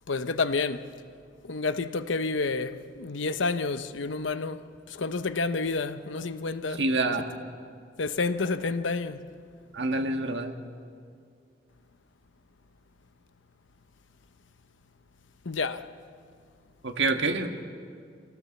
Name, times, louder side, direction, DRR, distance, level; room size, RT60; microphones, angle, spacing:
voice 1, 0.1-0.8 1.5-4.6 5.0-6.8 8.0-9.2 15.5-15.8, left 3 dB, 90° left, 0.8 m, -29 dB
voice 2, 6.8-7.3 9.7-10.5 16.8-17.5, right 3 dB, 75° right, 1.5 m, -26 dB
25.5 x 17.5 x 7.1 m
head